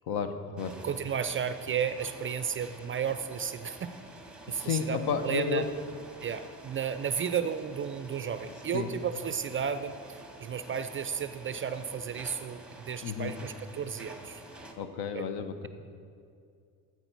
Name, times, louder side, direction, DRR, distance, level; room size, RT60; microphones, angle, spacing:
voice 1, 0.1-0.8 4.5-5.7 8.7-8.9 13.0-13.3 14.8-15.7, left 6 dB, 65° left, 9 dB, 0.8 m, -32 dB
sound 1, 0.6-14.7, right 1 dB, ahead, 1.1 m, -49 dB
voice 2, 0.8-3.9 4.5-5.7 6.2-9.9 10.4-14.4 15.1-15.2, right 7 dB, 30° right, 11 dB, 0.4 m, -33 dB
13.5 x 4.6 x 4.5 m, 2.3 s
supercardioid pair, 65°, 42 cm